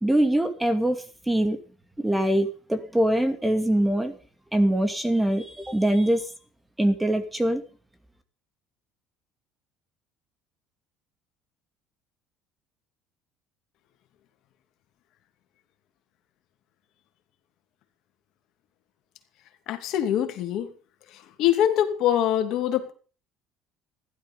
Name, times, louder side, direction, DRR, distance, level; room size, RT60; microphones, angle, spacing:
voice 1, 0.0-1.6 2.0-4.1 4.5-6.2 6.8-7.6, right 1 dB, 10° right, 9 dB, 2.4 m, -23 dB
voice 2, 19.7-20.7 21.4-22.9, left 10 dB, 65° left, 7 dB, 2.9 m, -23 dB
15.5 x 12.0 x 5.6 m, 0.38 s
supercardioid pair, 85°, 0 cm